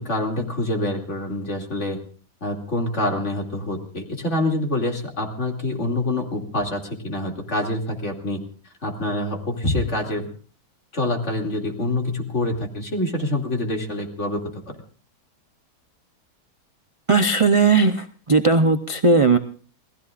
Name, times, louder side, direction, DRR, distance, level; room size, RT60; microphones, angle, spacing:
voice 1, 0.0-2.0 2.4-8.4 8.8-10.3 10.9-14.8, left 1 dB, 45° left, 2 dB, 2.9 m, -26 dB
voice 2, 17.1-19.4, right 3 dB, 50° right, 8 dB, 0.3 m, -17 dB
28.5 x 18.5 x 2.5 m, 0.41 s
omnidirectional pair, 1.8 m